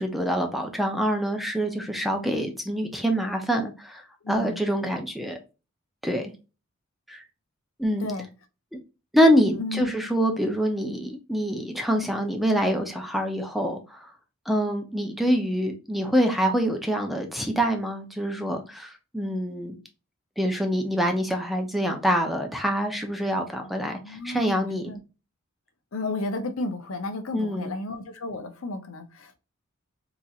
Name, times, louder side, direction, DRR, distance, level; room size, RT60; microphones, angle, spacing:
voice 1, 0.0-5.4 6.0-6.3 7.1-7.2 7.8-8.1 8.7-8.8 9.1-14.0 14.5-19.7 20.4-24.9 27.3-27.7, equal, ahead, 0.6 m, -25 dB
voice 2, 4.2-4.6 8.0-8.3 9.6-9.9 24.0-25.0 25.9-29.4, left 2 dB, 80° left, 0.7 m, -33 dB
4.0 x 2.9 x 2.4 m
head